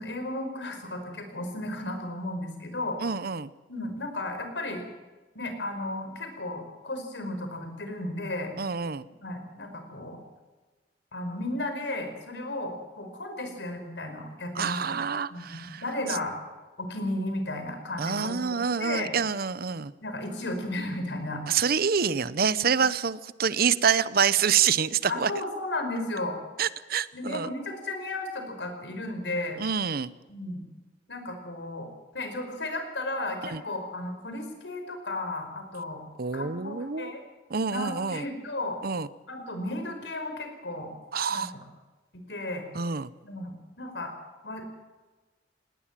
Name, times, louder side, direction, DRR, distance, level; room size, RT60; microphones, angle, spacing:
voice 1, 0.0-3.0 3.7-4.8 5.3-8.5 9.2-10.2 11.1-15.0 15.3-16.4 16.8-19.1 20.0-21.7 22.6-22.7 25.1-26.4 27.1-29.6 30.3-30.6 31.1-31.9 32.1-36.0 36.3-37.2 37.7-38.8 39.3-40.9 41.3-41.4 42.1-42.6 43.2-44.1 44.4-44.6, left 2 dB, 80° left, 6 dB, 5.0 m, -34 dB
voice 2, 3.0-3.5 8.6-9.1 14.5-15.8 18.0-19.9 21.5-25.3 26.6-27.5 29.6-30.1 33.4-33.6 36.2-37.1 37.5-38.2 38.8-39.1 41.1-41.5 42.7-43.1, right 6 dB, 60° right, 17 dB, 0.8 m, -27 dB
19.0 x 18.5 x 7.5 m, 1.3 s
head